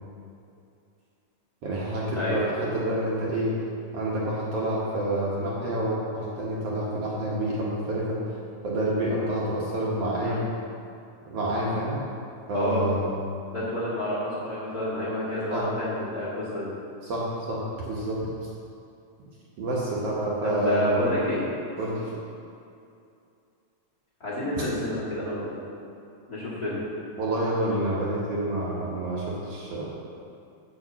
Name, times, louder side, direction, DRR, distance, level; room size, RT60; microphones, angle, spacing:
voice 1, 1.6-3.5 3.9-8.2 8.6-10.4 11.3-12.0 12.5-13.1 15.5-15.6 17.0-17.6 17.8-18.2 19.6-21.1 21.8-22.0 27.2-29.9, right 1 dB, 60° right, -5 dB, 2.0 m, -28 dB
voice 2, 12.5-12.8 13.5-16.7 20.4-21.5 24.2-25.4 26.3-26.8, left 1 dB, 35° left, -9 dB, 2.1 m, -29 dB
6.8 x 6.3 x 7.3 m, 2.6 s
omnidirectional pair, 3.5 m